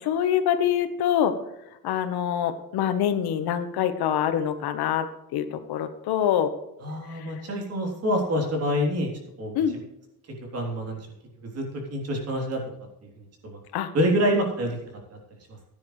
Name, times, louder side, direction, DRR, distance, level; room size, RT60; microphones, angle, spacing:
voice 1, 0.0-1.3 1.8-5.1 5.3-6.5 7.1-7.4 9.5-9.8 13.7-13.9, left 9 dB, 90° left, 9 dB, 1.3 m, -25 dB
voice 2, 6.8-9.1 9.4-9.8 10.5-11.1 11.5-11.6 11.9-12.6 13.2-13.6 13.9-14.8 15.1-15.2, equal, 40° right, 1 dB, 3.4 m, -26 dB
15.5 x 9.7 x 3.3 m, 0.90 s
cardioid pair, 175°, 37 cm